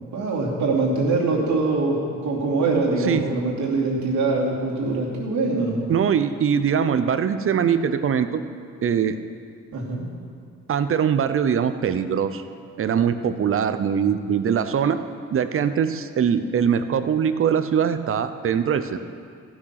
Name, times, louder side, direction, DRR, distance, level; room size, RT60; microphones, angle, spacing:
voice 1, 0.1-5.8 9.7-10.0 14.0-14.2, right 3 dB, 70° right, -4 dB, 2.8 m, -23 dB
voice 2, 5.9-8.4 8.8-9.1 10.7-12.4 12.8-15.0 15.3-19.0, right 7 dB, 45° right, 11 dB, 0.7 m, -22 dB
14.5 x 6.3 x 5.9 m, 2.3 s
cardioid pair, 90°, 30 cm